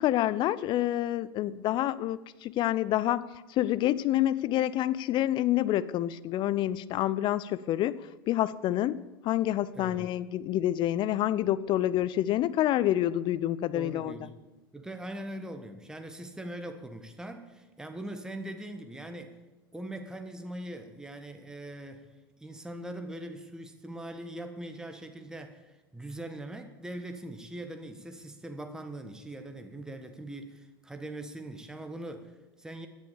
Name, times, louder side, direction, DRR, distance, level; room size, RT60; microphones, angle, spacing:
voice 1, 0.0-14.3, left 13 dB, 40° left, 17 dB, 0.6 m, -28 dB
voice 2, 9.7-10.1 13.7-14.3 14.7-19.4 19.7-22.1 22.4-32.9, right 1 dB, 5° right, 6 dB, 1.5 m, -41 dB
16.0 x 10.5 x 7.1 m, 1.1 s
figure-of-eight pair, 85°, 12 cm